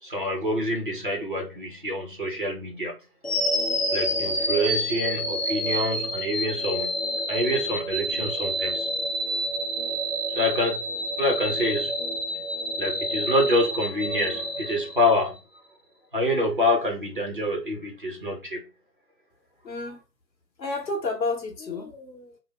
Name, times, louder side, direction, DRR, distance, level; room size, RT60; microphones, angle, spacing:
voice 1, 0.0-3.0 3.9-7.0 7.3-8.9 10.3-10.8 11.2-11.9 12.8-15.4 16.1-18.6, left 1 dB, 35° right, 0.6 m, -26 dB
sound 1, 3.2-15.4, equal, 40° left, 0.5 m, -28 dB
voice 2, 19.6-20.0 20.6-22.4, left 3 dB, 80° left, 0.9 m, -31 dB
2.4 x 2.0 x 3.0 m
figure-of-eight pair, 155°, 50 cm